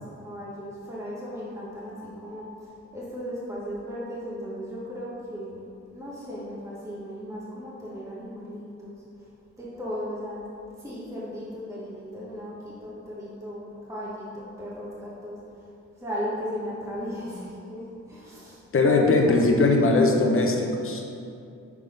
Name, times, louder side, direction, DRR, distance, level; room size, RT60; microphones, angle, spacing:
voice 1, 0.0-5.6 5.9-8.9 9.6-10.4 10.8-15.4 16.0-19.4, equal, 10° right, -7 dB, 1.1 m, -36 dB
voice 2, 18.7-21.0, left 2 dB, 45° left, 2 dB, 0.8 m, -20 dB
6.0 x 3.6 x 5.0 m, 2.5 s
wide cardioid pair, 105°, 29 cm